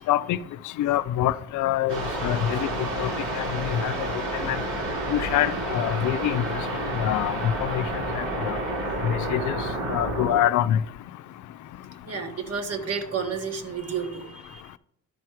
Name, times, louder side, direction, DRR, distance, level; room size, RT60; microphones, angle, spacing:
voice 1, 0.1-0.4 0.8-3.9 4.4-4.6 5.1-6.4 6.9-7.9 8.2-8.6 9.0-9.6 9.9-10.8, left 12 dB, 80° left, 0.5 m, -25 dB
sound 1, 1.9-10.4, right 1 dB, 75° right, 3.7 m, -30 dB
voice 2, 12.1-14.6, right 6 dB, 55° right, 1.5 m, -31 dB
11.5 x 4.5 x 4.7 m
cardioid pair, 90°, 30 cm